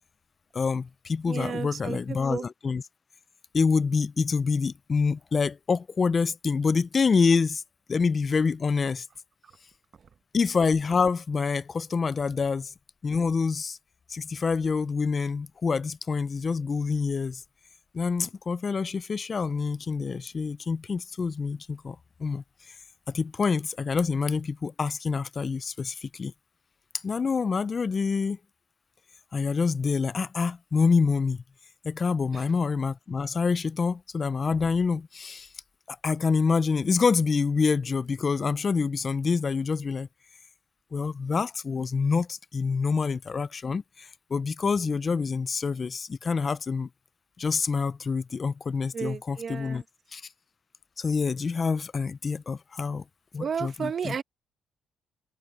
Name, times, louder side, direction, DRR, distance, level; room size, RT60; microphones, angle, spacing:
voice 1, 0.5-2.8 3.5-7.6 7.9-9.1 10.3-12.7 13.0-13.8 14.1-17.4 17.9-22.7 23.1-26.3 27.0-28.4 29.3-31.4 31.8-35.5 35.9-40.1 40.9-46.9 47.4-49.8 50.1-50.2 51.0-53.0 53.3-54.1, left 5 dB, 40° left, 0.5 m, -26 dB
voice 2, 1.2-2.4 9.4-9.6 9.9-10.1 32.3-32.5 48.9-49.8 53.4-54.2, right 6 dB, 50° right, 1.2 m, -33 dB
cardioid pair, 90°, 0 cm